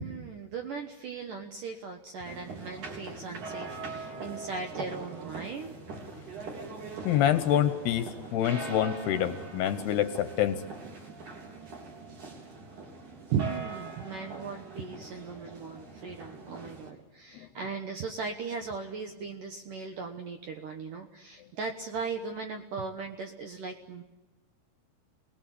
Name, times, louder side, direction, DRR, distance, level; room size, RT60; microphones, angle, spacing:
voice 1, 0.0-5.8 13.3-24.0, right 5 dB, 75° right, 5 dB, 1.9 m, -37 dB
sound 1, 2.2-16.9, right 3 dB, 45° right, 4.8 m, -42 dB
voice 2, 7.1-10.6 17.3-17.5, left 11 dB, 75° left, 10 dB, 2.6 m, -27 dB
28.0 x 19.5 x 8.4 m, 1.2 s
omnidirectional pair, 5.5 m